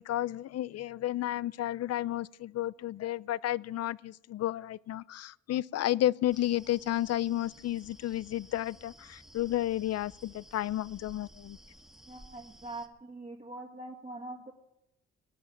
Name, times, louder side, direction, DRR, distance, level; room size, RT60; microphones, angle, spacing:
voice 1, 0.0-11.6, left 13 dB, 55° left, 0.5 m, -32 dB
sound 1, 6.3-12.9, right 1 dB, ahead, 1.8 m, -55 dB
voice 2, 12.1-14.5, right 2 dB, 25° right, 1.8 m, -43 dB
18.0 x 10.0 x 7.1 m
cardioid pair, 90°, 30 cm